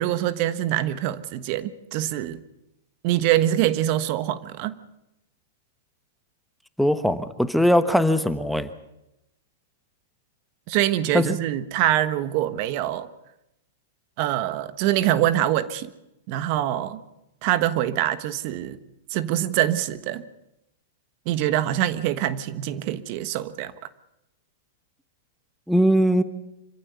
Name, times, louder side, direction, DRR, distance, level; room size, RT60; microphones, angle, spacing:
voice 1, 0.0-2.4 3.0-4.8 10.7-13.1 14.2-15.9 16.3-17.0 17.4-18.8 19.1-20.2 21.2-23.7, right 13 dB, 50° right, 13 dB, 1.3 m, -24 dB
voice 2, 6.8-8.7 11.1-11.3 25.7-26.2, equal, ahead, 10 dB, 1.2 m, -20 dB
26.0 x 15.0 x 8.3 m, 0.89 s
hypercardioid pair, 125°, 0 cm